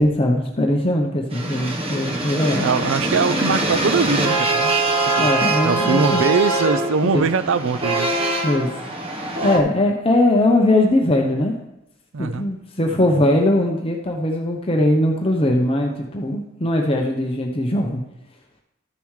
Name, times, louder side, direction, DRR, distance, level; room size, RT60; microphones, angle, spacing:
voice 1, 0.0-2.7 3.4-3.5 5.2-6.2 7.0-7.2 8.4-8.7 9.4-11.5 12.2-18.0, left 1 dB, 25° left, 1 dB, 0.7 m, -20 dB
sound 1, 1.3-9.6, right 2 dB, 25° right, 1.1 m, -23 dB
voice 2, 2.6-4.8 5.0-5.3 5.6-8.1 12.1-12.5, right 5 dB, 65° right, 13 dB, 0.5 m, -22 dB
13.5 x 6.9 x 3.2 m, 0.89 s
head